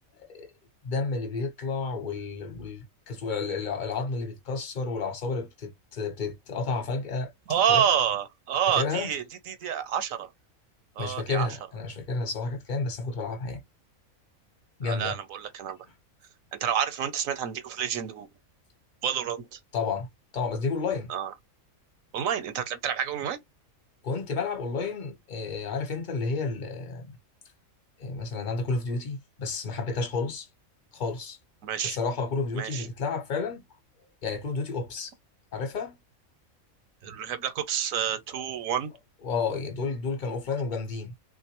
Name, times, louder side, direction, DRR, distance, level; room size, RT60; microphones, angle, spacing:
voice 1, 0.1-0.5 0.8-7.3 7.7-7.8 8.8-9.1 11.0-13.6 14.8-15.2 19.7-20.1 20.3-21.1 24.0-27.2 28.0-30.5 30.9-31.4 31.8-33.6 34.2-35.1 35.5-36.0 39.2-41.1, left 4 dB, 40° left, 1.0 m, -31 dB
voice 2, 7.5-10.3 11.0-11.5 14.8-15.8 16.6-18.3 19.0-19.6 21.1-21.3 22.1-23.4 31.6-32.0 32.6-32.9 37.0-38.9, right 9 dB, 75° right, 1.1 m, -28 dB
3.7 x 2.5 x 2.9 m
omnidirectional pair, 1.4 m